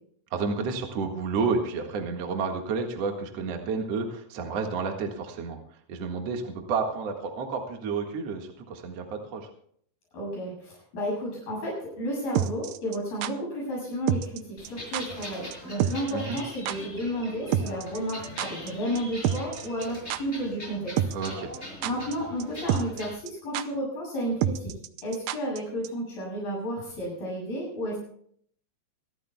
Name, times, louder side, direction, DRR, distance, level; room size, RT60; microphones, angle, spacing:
voice 1, 0.3-5.6 5.9-9.4 16.1-16.4 21.1-21.5, right 4 dB, 50° right, 3 dB, 2.4 m, -30 dB
voice 2, 10.1-21.0 21.8-24.7 25.0-28.0, equal, 70° left, -4 dB, 9.5 m, -32 dB
sound 1, 12.3-13.3 14.1-14.4 14.6-14.7 14.9-15.3 15.5-15.6 15.8-16.1 16.4-16.5 16.7-16.8 17.5-18.7 19.0-19.1 19.2-19.8 20.1-20.2 21.0-21.3 21.5-22.1 22.4-22.5 22.7-23.0 23.3-23.4 23.5-23.6 24.4-25.6 25.8-25.9, right 10 dB, 75° right, 2.1 m, -27 dB
sound 2, 14.6-23.1, left 1 dB, 15° left, 5.9 m, -42 dB
25.5 x 13.0 x 2.3 m, 0.63 s
omnidirectional pair, 4.3 m